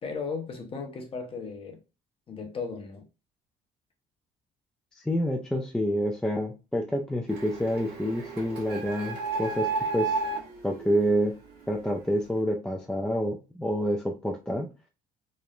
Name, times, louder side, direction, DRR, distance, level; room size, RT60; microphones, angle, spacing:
voice 1, 0.0-1.8 2.3-3.0, left 5 dB, 35° left, 0.7 m, -36 dB
voice 2, 5.0-10.2 10.6-11.3 11.7-14.7, equal, 5° left, 0.3 m, -28 dB
Printer, 7.3-11.9, right 4 dB, 75° right, 1.1 m, -33 dB
3.0 x 2.0 x 2.3 m
cardioid pair, 110°, 17 cm